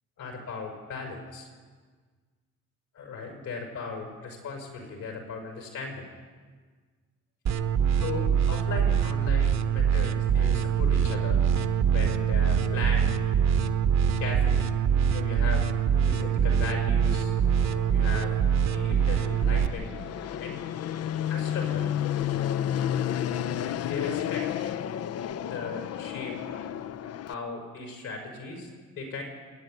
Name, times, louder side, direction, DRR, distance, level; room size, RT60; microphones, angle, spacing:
voice 1, 0.2-1.5 2.9-6.1 8.0-11.4 11.9-13.1 14.2-14.6 15.1-15.7 16.1-17.3 17.9-18.3 18.7-19.9 20.4-20.6 21.3-21.9 23.8-24.7 25.4-26.4 27.2-28.7 29.0-29.2, left 4 dB, 75° left, 2 dB, 6.1 m, -37 dB
sound 1, 7.5-19.7, right 8 dB, 60° right, 1.2 m, -24 dB
Fixed-wing aircraft airplane, 17.1-27.3, left 10 dB, 55° left, 0.6 m, -32 dB
28.0 x 10.5 x 9.5 m, 1.5 s
cardioid pair, 90°, 30 cm